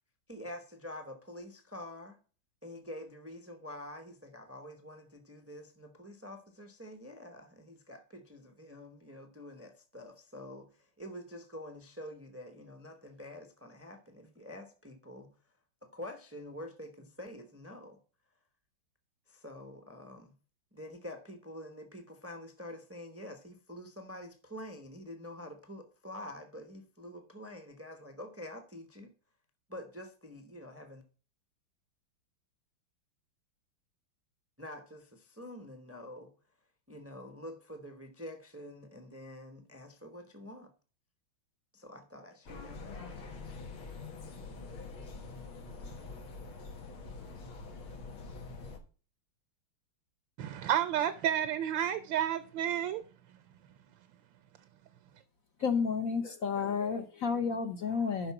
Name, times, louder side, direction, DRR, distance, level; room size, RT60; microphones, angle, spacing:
voice 1, 0.3-2.2 2.6-15.3 15.8-18.0 19.3-20.4 20.7-29.1 29.7-31.0 34.6-36.3 36.9-40.7 41.7-43.3, left 1 dB, 25° right, 0.3 m, -47 dB
sound 1, 42.5-48.8, left 3 dB, 85° left, 2.2 m, -45 dB
voice 2, 50.4-53.0, right 10 dB, 75° right, 1.3 m, -31 dB
voice 3, 55.6-58.3, left 5 dB, 60° left, 0.9 m, -31 dB
7.7 x 5.7 x 5.8 m
omnidirectional pair, 2.2 m